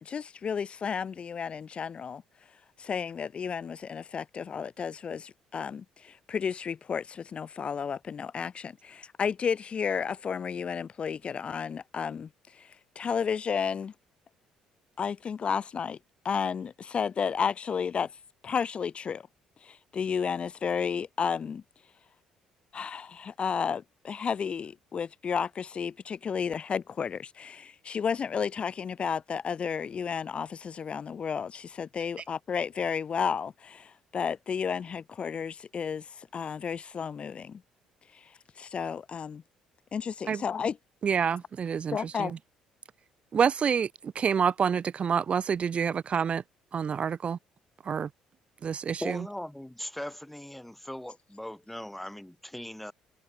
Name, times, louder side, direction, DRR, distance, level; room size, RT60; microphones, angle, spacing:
voice 1, 0.0-2.2 2.8-13.9 15.0-16.0 16.2-18.1 18.4-19.2 19.6-21.6 22.7-37.6 38.1-39.4 39.9-40.8 41.9-42.3, left 6 dB, 45° left, 0.7 m, -32 dB
voice 2, 41.0-42.4 43.3-46.4 46.7-47.4 47.9-48.1 48.6-49.3, right 7 dB, 45° right, 1.9 m, -28 dB
voice 3, 49.0-52.9, left 1 dB, 5° left, 2.1 m, -39 dB
supercardioid pair, 65°, 3 cm